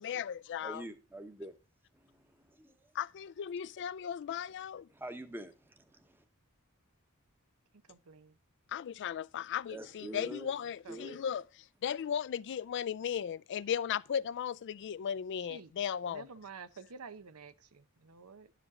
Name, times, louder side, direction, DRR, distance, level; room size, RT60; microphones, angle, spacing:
voice 1, 0.0-0.8 3.0-4.9 8.7-11.4 11.8-16.2, left 8 dB, 55° left, 0.3 m, -36 dB
voice 2, 0.6-1.5 1.9-2.8 4.9-6.2 9.7-10.5 10.9-11.2, right 1 dB, 10° right, 0.9 m, -46 dB
voice 3, 7.8-8.4 10.5-11.2 15.4-15.7 16.0-18.5, right 5 dB, 90° right, 0.7 m, -51 dB
10.5 x 5.0 x 4.8 m
head